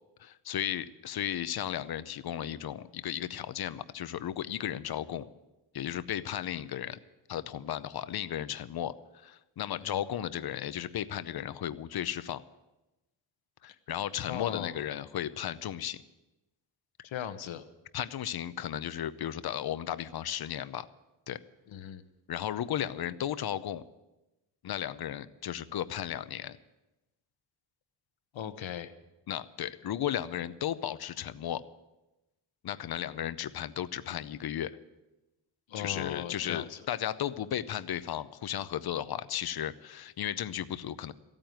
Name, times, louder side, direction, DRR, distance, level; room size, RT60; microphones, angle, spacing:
voice 1, 0.2-5.3 5.7-7.0 7.3-12.4 13.6-16.0 17.9-20.9 21.3-21.4 22.3-23.8 24.6-26.6 29.3-31.6 32.6-34.8 35.7-41.1, left 10 dB, 55° left, 15 dB, 0.7 m, -35 dB
voice 2, 9.7-10.0 14.3-14.8 17.0-17.6 21.7-22.0 28.3-28.9 35.7-36.9, left 9 dB, 75° left, 11 dB, 1.1 m, -38 dB
15.0 x 9.0 x 9.3 m, 1.0 s
wide cardioid pair, 155°, 46 cm